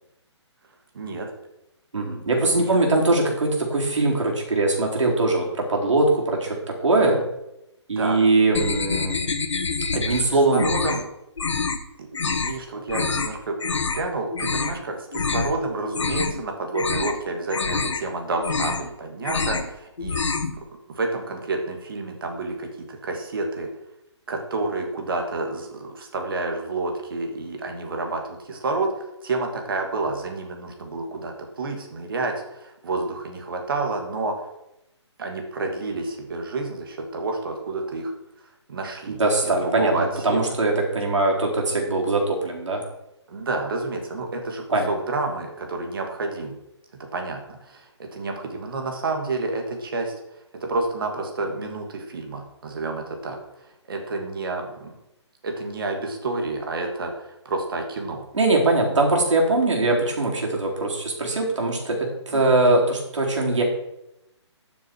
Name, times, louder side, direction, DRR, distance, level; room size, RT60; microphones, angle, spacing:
voice 1, 0.9-1.3 2.5-2.8 7.0-7.2 8.0-8.2 10.3-11.0 12.0-20.2 20.9-23.7 24.3-28.9 29.2-34.3 35.2-38.1 38.7-40.4 43.3-46.6 47.1-50.1 50.6-53.4 53.9-55.0 55.4-58.3 62.3-62.5, right 3 dB, 50° right, 3 dB, 2.4 m, -29 dB
voice 2, 1.9-7.2 7.9-9.2 9.9-10.6 39.1-42.8 44.7-44.9 58.3-63.6, right 2 dB, 80° right, -1 dB, 4.2 m, -21 dB
sound 1, 8.5-10.2 10.5-11.0 11.4-11.8 12.1-12.5 12.9-13.3 13.6-14.0 14.3-14.8 15.1-15.5 15.8-16.4 16.7-17.2 17.5-18.0 18.3-18.9 19.2-19.7 20.0-20.5, left 4 dB, 80° left, 1.6 m, -26 dB
13.0 x 7.1 x 4.7 m, 0.88 s
hypercardioid pair, 170°, 15 cm